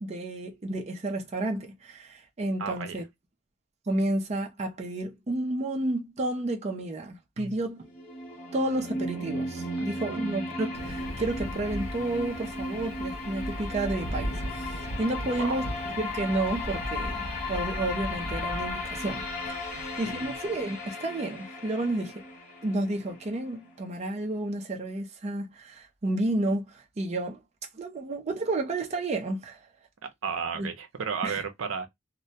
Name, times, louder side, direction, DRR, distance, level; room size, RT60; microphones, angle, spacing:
voice 1, 0.0-3.1 3.9-7.9 8.5-15.7 16.0-22.2 22.6-27.4 27.7-29.6 30.5-30.7 31.2-31.4, right 2 dB, 35° right, 0.4 m, -31 dB
voice 2, 2.6-3.0 7.4-7.6 10.1-10.2 15.4-15.6 19.7-20.3 30.0-31.9, right 6 dB, 85° right, 0.5 m, -34 dB
sound 1, 7.8-23.7, left 1 dB, 40° left, 0.9 m, -36 dB
Thunder, 10.7-20.4, equal, 80° left, 0.6 m, -38 dB
2.1 x 2.1 x 2.7 m
head